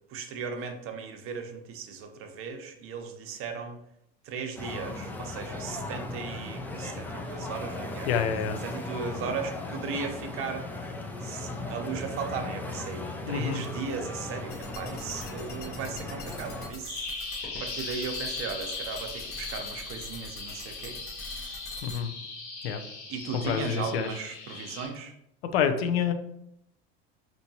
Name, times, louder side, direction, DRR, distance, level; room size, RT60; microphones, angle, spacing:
voice 1, 0.1-3.8 4.2-8.1 8.6-10.7 11.2-17.1 17.6-21.6 23.1-25.1, right 5 dB, 45° right, 5 dB, 0.7 m, -37 dB
sound 1, 4.6-16.7, left 2 dB, 5° left, 0.3 m, -37 dB
voice 2, 8.1-8.6 13.3-13.6 21.8-22.1 22.6-22.8 23.3-24.1 25.5-26.1, left 7 dB, 80° left, 8 dB, 0.5 m, -27 dB
sound 2, 14.5-22.0, left 2 dB, 35° left, 0.7 m, -45 dB
Bird vocalization bird call bird song, 16.9-24.9, left 3 dB, 60° left, 1.1 m, -38 dB
4.4 x 2.6 x 2.8 m, 0.78 s
hypercardioid pair, 90°, 30 cm